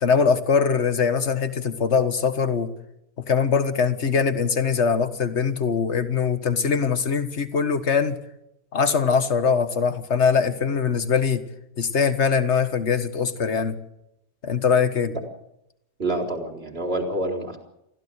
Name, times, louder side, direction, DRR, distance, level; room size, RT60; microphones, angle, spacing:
voice 1, 0.0-2.7 3.3-8.2 8.7-11.4 11.8-13.8 14.4-15.1, left 6 dB, 50° left, 10 dB, 1.8 m, -22 dB
voice 2, 16.0-17.6, right 1 dB, 40° right, 2 dB, 4.2 m, -27 dB
24.5 x 15.5 x 8.3 m, 0.83 s
omnidirectional pair, 1.6 m